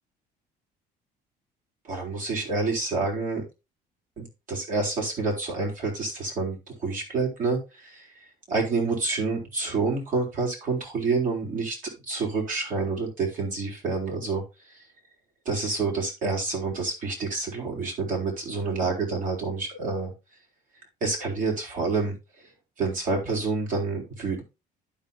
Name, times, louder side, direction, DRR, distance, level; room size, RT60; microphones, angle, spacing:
voice 1, 1.8-3.4 4.2-8.1 8.5-11.8 12.1-14.4 14.7-14.8 15.5-20.1 21.0-22.2 22.8-24.4, right 3 dB, 50° right, -1 dB, 3.8 m, -28 dB
11.5 x 5.5 x 2.8 m, 0.26 s
cardioid pair, 110°, 17 cm